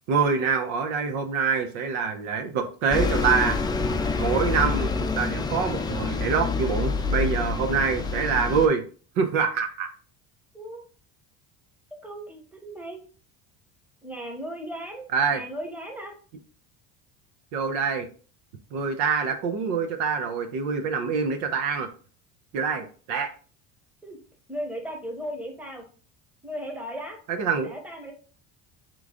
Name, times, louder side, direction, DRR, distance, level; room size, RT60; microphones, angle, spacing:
voice 1, 0.1-3.6 4.2-8.8 9.2-9.9 15.1-15.4 17.5-18.1 18.7-21.9 22.5-23.3 27.3-27.7, right 5 dB, 85° right, 6 dB, 0.8 m, -25 dB
Bus, 2.9-8.7, left 4 dB, 10° left, 0.3 m, -27 dB
voice 2, 10.5-10.8 12.0-13.0 14.0-16.2 24.0-24.2 24.5-25.8 26.4-27.2 27.6-28.1, equal, 5° right, 3 dB, 0.9 m, -36 dB
3.8 x 3.1 x 3.8 m, 0.40 s
supercardioid pair, 110°, 36 cm